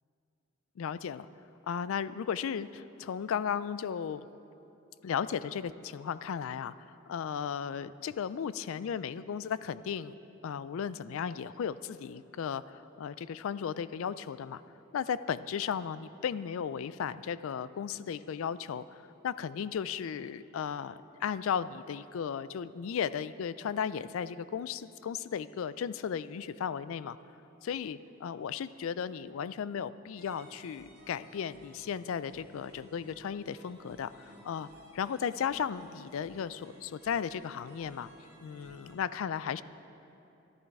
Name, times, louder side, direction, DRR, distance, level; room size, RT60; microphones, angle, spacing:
voice 1, 0.8-1.3 1.7-4.3 5.0-10.1 10.4-14.6 14.9-27.2 27.6-38.1 38.4-39.6, left 7 dB, 70° left, 16 dB, 0.3 m, -35 dB
sound 1, 30.2-39.0, equal, 45° right, 2.7 m, -56 dB
14.0 x 11.5 x 4.7 m, 2.9 s
head